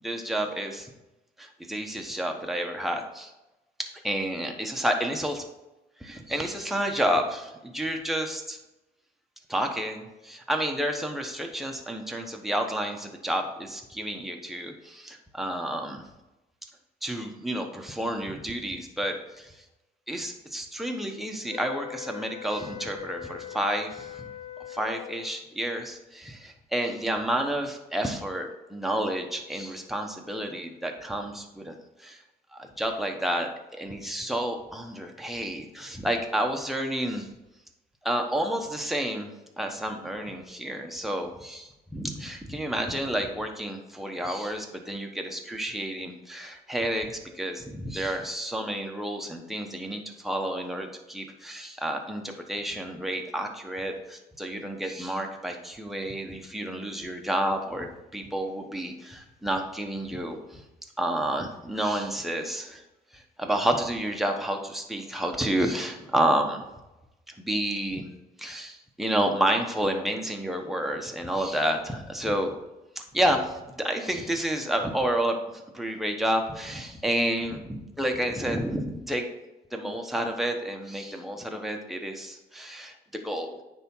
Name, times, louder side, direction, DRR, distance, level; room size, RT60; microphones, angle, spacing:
voice 1, 0.0-0.9 1.4-3.3 3.8-5.4 6.0-8.6 9.5-16.0 17.0-19.6 20.1-24.3 24.7-31.7 32.0-32.2 32.5-37.3 38.0-39.3 39.6-60.6 61.0-62.8 63.1-66.7 67.4-68.1 68.4-72.5 73.0-79.3 79.7-82.9 83.2-83.6, right 1 dB, ahead, 2 dB, 1.1 m, -30 dB
sound 1, 21.5-25.4, left 11 dB, 35° left, 0.6 m, -41 dB
9.3 x 3.6 x 5.5 m, 0.98 s
cardioid pair, 110°, 17 cm